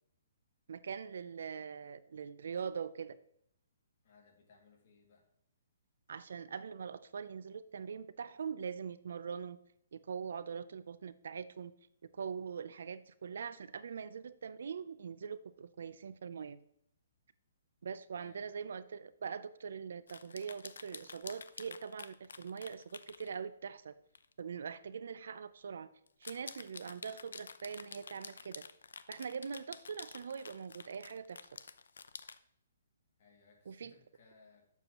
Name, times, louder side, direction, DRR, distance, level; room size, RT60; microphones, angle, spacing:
voice 1, 0.7-3.2 6.1-9.6 9.9-11.7 12.1-16.6 17.8-23.9 24.4-25.9 26.2-28.6 29.1-31.4 33.7-33.9, right 6 dB, 65° right, 15 dB, 0.5 m, -42 dB
voice 2, 4.0-5.3 18.1-18.5 33.2-34.7, left 4 dB, 45° left, 1 dB, 2.3 m, -64 dB
sound 1, 20.1-23.3 24.1-24.3 24.7-24.8 26.1-32.4, left 5 dB, 85° left, 0.6 m, -50 dB
11.0 x 7.3 x 3.0 m, 0.73 s
hypercardioid pair, 165°, 0 cm